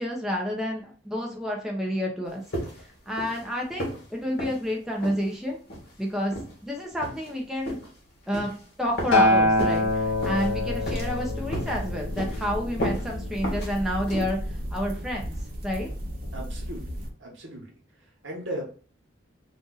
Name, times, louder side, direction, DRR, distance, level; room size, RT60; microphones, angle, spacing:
voice 1, 0.0-2.4 3.1-5.6 6.0-6.3 6.6-7.8 8.3-14.4 14.7-15.3 15.6-15.9, equal, ahead, -1 dB, 0.6 m, -29 dB
sound 1, 2.5-2.9 3.2-3.4 3.8-4.0 4.4-4.6 5.0-5.2 5.7-5.9 6.3-6.5 7.0-7.3 7.7-7.9 8.3-8.6 9.0-9.2 9.6-9.8 10.2-10.5 10.9-11.2 11.5-11.8 12.2-12.4 12.8-13.1 13.4-13.7 14.1-14.3, equal, 50° left, 1.1 m, -33 dB
sound 2, 8.8-17.1, equal, 45° right, 0.7 m, -35 dB
Acoustic guitar, 9.1-13.4 14.3-14.4, left 1 dB, 80° left, 0.7 m, -25 dB
voice 2, 16.3-16.9 17.2-17.7 18.2-18.6, right 1 dB, 75° right, 1 dB, 1.1 m, -36 dB
2.6 x 2.5 x 3.8 m, 0.42 s
head